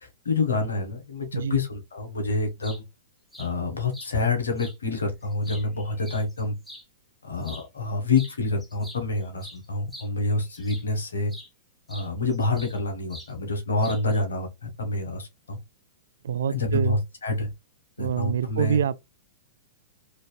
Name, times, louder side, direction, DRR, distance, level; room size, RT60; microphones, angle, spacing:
voice 1, 0.0-2.8 3.4-6.5 7.2-11.3 11.9-15.6 16.5-17.5 18.0-18.8, left 3 dB, 85° left, 1.5 m, -27 dB
sound 1, 2.6-2.8 3.3-3.5 3.9-4.1 4.6-4.8 5.2-6.8 7.4-7.7 8.1-8.4 8.6-10.9 11.3-11.5 11.9-12.8 13.1-13.3 13.8-14.2, equal, ahead, 1.1 m, -44 dB
voice 2, 16.2-17.0 18.0-19.0, right 8 dB, 75° right, 0.4 m, -26 dB
3.9 x 2.8 x 2.3 m
hypercardioid pair, 120°, 0 cm